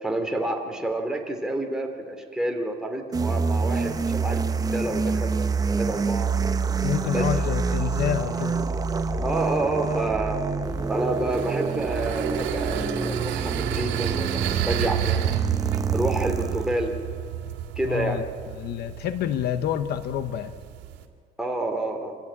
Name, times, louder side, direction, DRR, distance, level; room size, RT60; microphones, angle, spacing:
voice 1, 0.0-4.4 4.7-5.4 5.7-6.3 7.1-7.3 9.2-10.4 10.9-15.3 15.9-16.9 17.8-18.2 21.4-22.2, right 2 dB, 5° right, 2 dB, 3.0 m, -28 dB
sound 1, 3.1-16.8, right 4 dB, 20° right, 0.9 m, -27 dB
voice 2, 6.8-8.6 17.8-18.2 18.6-20.5, left 10 dB, 55° left, 11 dB, 1.0 m, -28 dB
sound 2, 10.6-21.1, right 10 dB, 70° right, 2.4 m, -31 dB
26.5 x 15.0 x 8.8 m, 2.1 s
cardioid pair, 125°, 19 cm